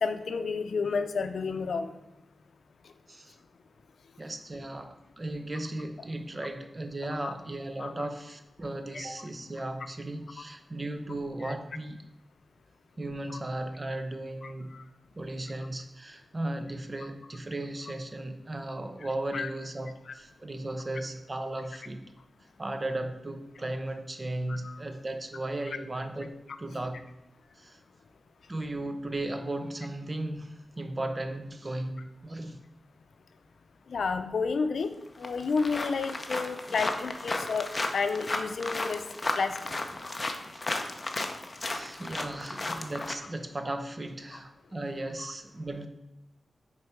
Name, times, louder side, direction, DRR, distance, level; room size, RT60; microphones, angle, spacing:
voice 1, 0.0-1.9 7.2-7.3 7.8-7.9 8.9-9.0 11.4-11.5 14.4-14.5 19.3-19.5 24.5-24.7 33.9-34.9 35.2-37.7 37.9-39.0 39.4-39.6, left 4 dB, 80° left, 9 dB, 0.5 m, -30 dB
voice 2, 4.2-12.0 13.0-14.8 15.2-22.0 22.6-27.0 27.6-27.8 28.5-32.6 36.7-36.8 41.7-45.9, right 1 dB, 25° right, 7 dB, 0.6 m, -36 dB
sound 1, 34.8-34.9 35.2-43.1, left 2 dB, 25° left, 0.6 m, -34 dB
6.7 x 4.5 x 4.6 m, 0.94 s
wide cardioid pair, 155°, 0 cm